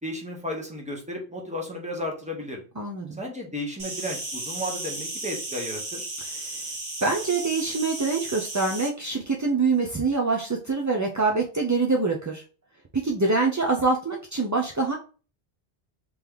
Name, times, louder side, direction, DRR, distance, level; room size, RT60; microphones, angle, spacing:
voice 1, 0.0-2.6 3.2-6.1, left 1 dB, 5° right, -1 dB, 1.0 m, -33 dB
voice 2, 2.8-3.2 6.4-6.5 7.0-12.4 12.9-15.0, right 3 dB, 30° right, -1 dB, 0.3 m, -25 dB
Insect, 3.8-8.9, right 2 dB, 45° right, 1.3 m, -34 dB
3.4 x 3.0 x 3.6 m, 0.36 s
omnidirectional pair, 1.1 m